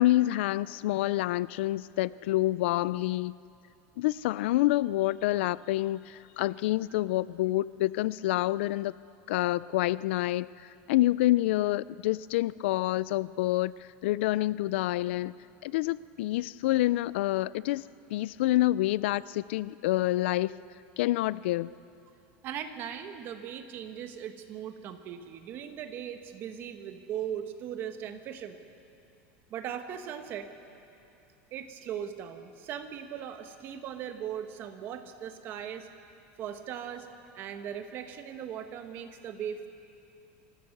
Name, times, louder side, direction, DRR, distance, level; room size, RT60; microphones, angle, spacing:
voice 1, 0.0-3.3 4.0-8.9 9.3-10.5 10.9-15.3 15.6-17.8 18.1-20.5 21.0-21.7, left 16 dB, 80° left, 19 dB, 0.4 m, -27 dB
voice 2, 22.4-28.6 29.5-30.5 31.5-35.9 36.4-37.1 37.3-39.7, right 9 dB, 35° right, 7 dB, 1.3 m, -39 dB
26.0 x 15.0 x 6.5 m, 2.6 s
supercardioid pair, 170°, 6 cm